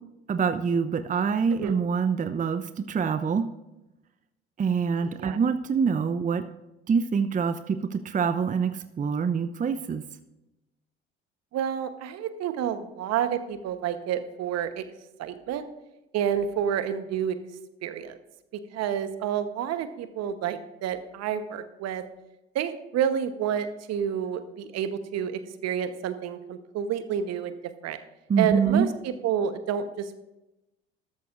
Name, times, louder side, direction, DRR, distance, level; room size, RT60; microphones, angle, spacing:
voice 1, 0.3-3.5 4.6-6.4 6.9-10.0 28.3-28.9, right 6 dB, 25° right, 10 dB, 0.7 m, -25 dB
voice 2, 5.0-5.4 11.5-14.8 15.2-15.7 16.1-17.3 17.8-18.2 18.7-22.0 22.5-27.5 27.8-28.0 28.4-30.2, right 8 dB, 55° right, 10 dB, 1.1 m, -29 dB
13.0 x 13.0 x 2.5 m, 0.95 s
hypercardioid pair, 55°, 31 cm